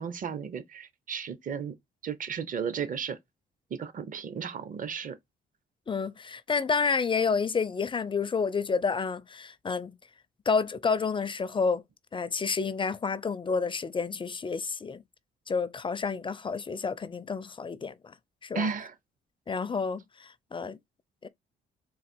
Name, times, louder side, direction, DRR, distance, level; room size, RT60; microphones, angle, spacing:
voice 1, 0.0-1.7 2.0-3.2 3.7-5.2 18.5-18.9, right 6 dB, 45° right, 0.7 m, -34 dB
voice 2, 5.9-9.9 10.5-11.8 12.1-15.0 15.5-18.1 18.4-18.7 19.5-20.8 21.2-21.3, left 5 dB, 25° left, 0.4 m, -29 dB
3.9 x 2.4 x 4.3 m
cardioid pair, 90°, 20 cm